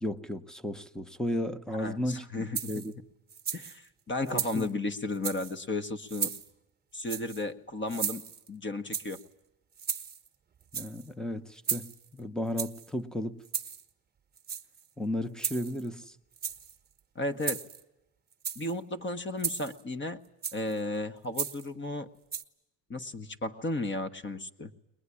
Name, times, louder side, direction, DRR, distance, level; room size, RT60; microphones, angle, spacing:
voice 1, 0.0-2.9 4.3-4.7 10.7-11.9 12.1-13.4 15.0-16.0, left 1 dB, ahead, 11 dB, 1.0 m, -34 dB
voice 2, 1.7-2.7 3.5-6.3 6.9-8.2 8.5-9.2 17.1-17.6 18.5-20.2 20.5-22.1 22.9-24.7, left 2 dB, 25° left, 9 dB, 1.3 m, -34 dB
sound 1, 2.5-2.9 3.3-3.8 4.3-4.7 5.1-5.5 6.1-6.5 7.1-7.4 7.9-8.5 8.9-9.2 9.8-10.3 10.6-11.1 11.6-12.1 12.6-12.9 13.4-13.8 14.4-14.9 15.4-15.9 16.3-16.7 17.4-17.8 18.3-18.7 19.4-19.8 20.4-20.7 21.3-21.7 22.3-22.4, right 7 dB, 20° right, 1.2 m, -35 dB
21.5 x 20.5 x 9.9 m, 0.91 s
cardioid pair, 105°, 44 cm